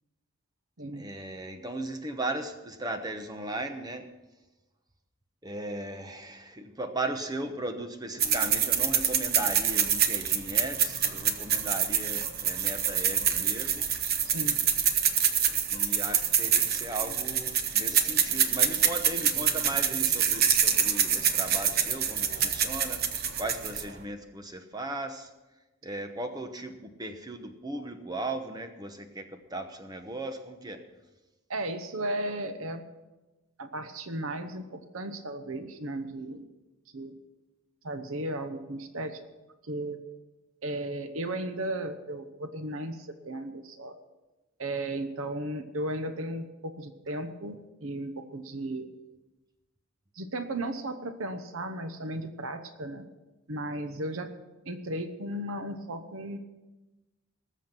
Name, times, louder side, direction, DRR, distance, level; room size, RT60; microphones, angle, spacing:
voice 1, 0.9-4.1 5.4-13.9 15.7-25.3 25.8-30.9, right 2 dB, 20° right, 7 dB, 1.0 m, -37 dB
sound 1, 8.2-24.0, right 8 dB, 45° right, 1.0 m, -26 dB
voice 2, 14.3-14.7 31.5-32.8 33.6-36.5 36.9-37.1 37.8-39.2 39.6-40.0 40.6-44.0 44.6-48.9 50.1-53.1 53.5-54.3 54.7-56.4, right 1 dB, 75° right, 9 dB, 1.0 m, -35 dB
19.5 x 7.2 x 6.0 m, 1.1 s
head